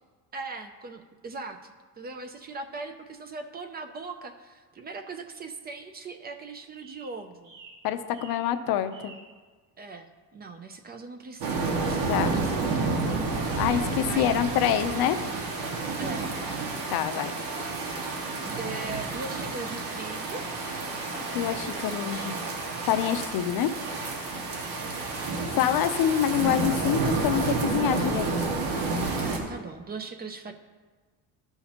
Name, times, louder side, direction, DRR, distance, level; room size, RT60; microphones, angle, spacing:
voice 1, 0.3-7.5 9.8-13.0 14.1-14.4 16.0-16.3 18.5-20.4 24.5-25.3 29.2-30.5, right 3 dB, 25° right, 7 dB, 0.4 m, -40 dB
sound 1, 5.6-6.4 6.8-7.1 7.4-7.8 8.1-8.5 8.9-9.3, right 4 dB, 55° right, 2.7 m, -50 dB
voice 2, 7.8-9.1 12.1-12.3 13.5-15.2 16.9-17.3 21.3-22.3 22.9-23.7 25.5-28.5, left 10 dB, 70° left, 9 dB, 0.6 m, -26 dB
sound 2, 11.4-29.4, right 3 dB, 85° right, 1.7 m, -30 dB
13.0 x 5.7 x 2.9 m, 1.4 s
cardioid pair, 165°, 38 cm